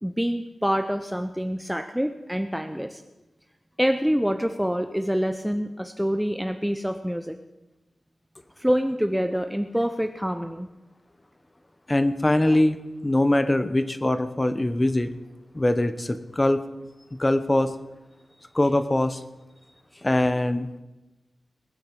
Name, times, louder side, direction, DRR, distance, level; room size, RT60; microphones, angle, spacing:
voice 1, 0.0-3.0 3.8-7.4 8.6-10.7, equal, 5° right, 8 dB, 0.6 m, -26 dB
voice 2, 11.9-12.8 13.0-15.1 15.5-16.6 17.1-17.7 18.5-19.2 20.0-20.8, left 1 dB, 20° left, 11 dB, 0.9 m, -22 dB
20.5 x 9.2 x 5.4 m, 1.0 s
wide cardioid pair, 110°, 0 cm